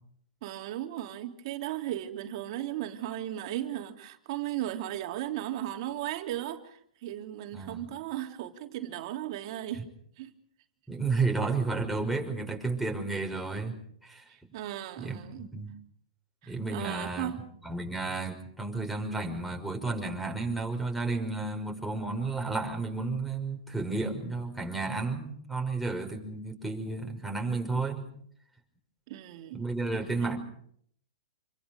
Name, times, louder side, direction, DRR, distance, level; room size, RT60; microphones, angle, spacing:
voice 1, 0.4-9.9 10.2-10.3 14.3-15.5 16.4-17.4 29.1-29.7 29.9-30.4, right 13 dB, 55° right, 3.3 m, -36 dB
voice 2, 7.5-7.9 10.9-13.7 14.0-14.3 15.0-15.7 16.5-17.3 17.6-28.1 29.6-30.4, right 3 dB, ahead, 5.7 m, -32 dB
28.0 x 25.0 x 5.4 m
hypercardioid pair, 125°, 4 cm